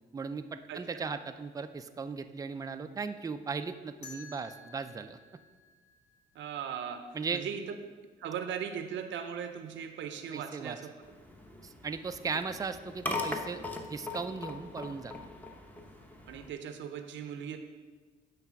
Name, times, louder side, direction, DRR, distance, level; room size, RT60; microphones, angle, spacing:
voice 1, 0.1-5.2 7.1-7.4 10.3-10.8 11.6-13.6 13.9-15.1, right 5 dB, 20° right, 9 dB, 0.4 m, -37 dB
voice 2, 0.7-1.0 6.3-7.0 7.3-7.8 8.2-10.9 16.3-17.6, right 8 dB, 70° right, 7 dB, 0.6 m, -38 dB
sound 1, 4.0-6.9, left 3 dB, 60° left, 2.1 m, -53 dB
sound 2, 11.0-16.5, left 2 dB, 10° left, 0.8 m, -40 dB
8.3 x 3.3 x 5.8 m, 1.4 s
cardioid pair, 90°, 20 cm